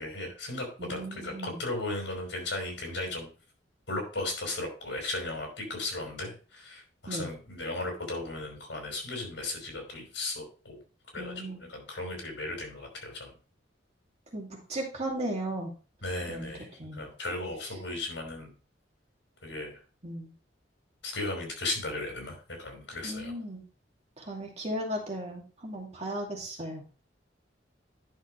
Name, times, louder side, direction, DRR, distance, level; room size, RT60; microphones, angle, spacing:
voice 1, 0.0-3.3 3.9-10.8 11.1-13.3 16.0-16.7 16.9-18.5 19.4-19.8 21.0-23.3, left 2 dB, 70° left, 2 dB, 5.1 m, -36 dB
voice 2, 0.8-1.6 7.1-7.3 11.2-11.6 14.3-15.7 16.3-16.5 16.8-17.1 20.0-20.3 23.0-23.6 24.2-26.8, right 1 dB, 35° right, 0 dB, 2.5 m, -36 dB
10.5 x 6.3 x 3.2 m, 0.35 s
head